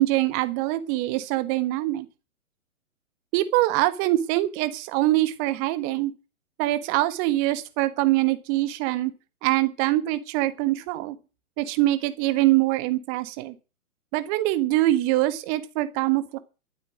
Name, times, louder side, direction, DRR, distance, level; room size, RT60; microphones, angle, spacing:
voice 1, 0.0-2.1 3.3-6.1 6.6-9.1 9.4-11.2 11.6-13.5 14.1-16.4, right 16 dB, 25° right, 13 dB, 1.4 m, -24 dB
13.0 x 7.9 x 9.3 m, 0.31 s
figure-of-eight pair, 125°, 44 cm